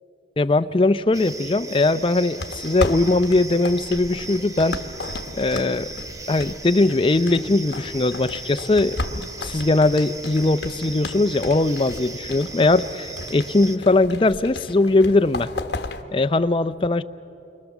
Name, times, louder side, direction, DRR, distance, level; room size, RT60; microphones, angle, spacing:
voice 1, 0.4-4.8 5.4-5.9 6.3-9.0 9.4-15.5 16.1-17.0, left 2 dB, 30° left, 10 dB, 0.5 m, -20 dB
sound 1, 1.1-13.8, right 3 dB, 20° right, 0.7 m, -38 dB
sound 2, 2.3-16.0, left 2 dB, 65° left, 1.3 m, -34 dB
29.0 x 23.5 x 7.2 m, 3.0 s
head